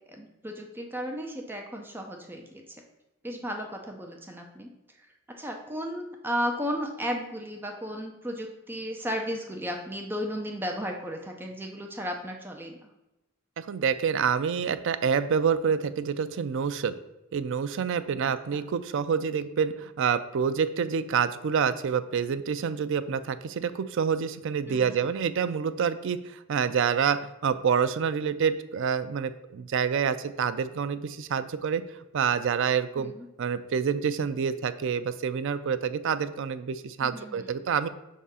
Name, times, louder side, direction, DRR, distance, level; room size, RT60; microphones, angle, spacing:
voice 1, 0.1-2.8 3.2-4.7 5.0-12.9 18.2-18.6 24.7-25.0 33.0-33.3 37.0-37.6, equal, 10° right, 2 dB, 0.6 m, -35 dB
voice 2, 13.6-16.9 17.3-31.8 32.1-33.1 33.4-37.9, right 7 dB, 65° right, 12 dB, 0.4 m, -27 dB
5.6 x 3.7 x 5.5 m, 0.97 s
head